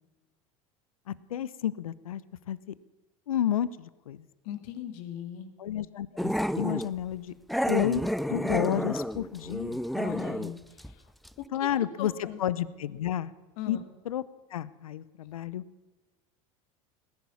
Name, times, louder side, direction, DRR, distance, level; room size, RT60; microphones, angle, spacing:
voice 1, 1.1-2.2 2.5-2.7 3.3-4.2 5.6-7.3 7.7-8.0 8.3-9.8 11.5-13.3 13.7-13.8 14.1-14.2 14.5-15.6, left 11 dB, 85° left, 19 dB, 0.7 m, -31 dB
voice 2, 4.4-5.5 9.9-11.0 11.4-11.7 12.0-12.4 13.6-13.8, left 11 dB, 65° left, 9 dB, 2.1 m, -38 dB
Growling, 6.2-6.9 7.5-10.5 10.8-10.9 11.2-11.3, equal, ahead, 0.5 m, -30 dB
19.0 x 11.0 x 7.0 m, 1.2 s
hypercardioid pair, 85°, 18 cm